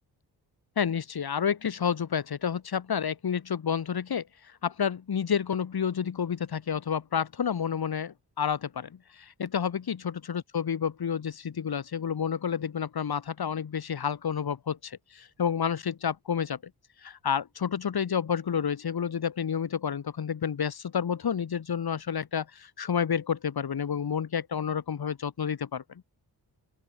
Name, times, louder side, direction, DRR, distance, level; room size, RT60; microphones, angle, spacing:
voice 1, 0.8-16.6 17.0-25.8, left 7 dB, 65° left, 6.7 m, -30 dB
open air
wide cardioid pair, 105°, 39 cm